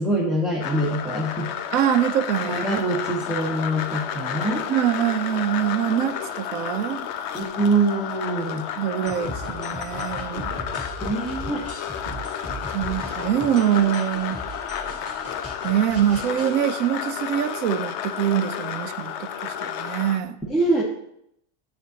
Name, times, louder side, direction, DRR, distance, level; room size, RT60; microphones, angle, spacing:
voice 1, 0.0-1.5 2.4-4.7 7.3-8.7 11.0-11.7 20.5-20.8, right 2 dB, ahead, -5 dB, 1.1 m, -24 dB
sound 1, 0.6-20.2, left 9 dB, 65° left, 0.7 m, -31 dB
voice 2, 1.7-2.9 4.7-7.0 8.8-10.5 12.7-14.4 15.6-20.4, right 10 dB, 80° right, 11 dB, 1.0 m, -24 dB
sound 2, 9.1-16.6, equal, 15° left, 2.4 m, -37 dB
10.5 x 7.6 x 2.8 m, 0.74 s
omnidirectional pair, 1.4 m